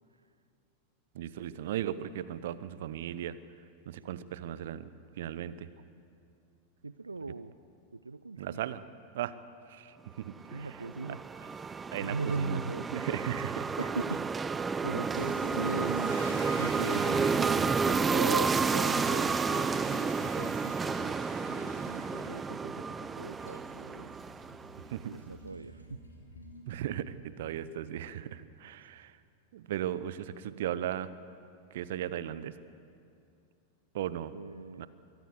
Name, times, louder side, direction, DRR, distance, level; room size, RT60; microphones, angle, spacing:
voice 1, 1.1-3.4 3.9-4.9 5.2-5.7 8.4-8.8 9.1-9.3 9.7-10.7 11.9-12.6 12.9-13.7 24.9-25.1 26.7-29.1 29.5-31.1 31.7-32.5 33.9-34.3 34.8-34.9, right 11 dB, 55° right, 15 dB, 0.8 m, -36 dB
voice 2, 6.8-7.5 7.9-8.6 10.5-11.4 12.0-12.9 13.8-14.3 14.8-16.1 16.6-24.1 25.0-26.0 34.3-34.9, right 3 dB, 80° right, 12 dB, 0.5 m, -39 dB
sound 1, 10.5-24.9, right 5 dB, 15° right, 0.5 m, -31 dB
Toilet flush, 15.0-27.4, left 1 dB, 80° left, 3.2 m, -47 dB
23.5 x 13.5 x 8.3 m, 2.4 s
figure-of-eight pair, 90°, 0 cm